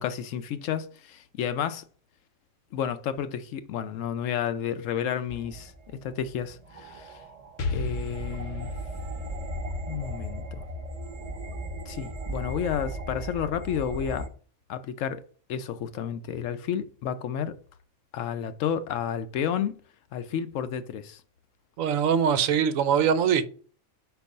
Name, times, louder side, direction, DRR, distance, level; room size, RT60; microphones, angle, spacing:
voice 1, 0.0-1.8 2.7-5.7 6.0-7.2 7.7-8.7 9.9-10.6 11.9-14.3 14.7-15.2 15.5-17.6 18.1-19.7 20.1-21.2, left 8 dB, 70° left, 0.9 m, -31 dB
sound 1, 5.3-14.3, right 1 dB, 30° right, 0.9 m, -37 dB
Explosion, 7.6-11.4, left 2 dB, 55° left, 0.5 m, -36 dB
voice 2, 21.8-23.4, right 7 dB, 75° right, 1.0 m, -22 dB
4.8 x 4.5 x 5.3 m
omnidirectional pair, 1.4 m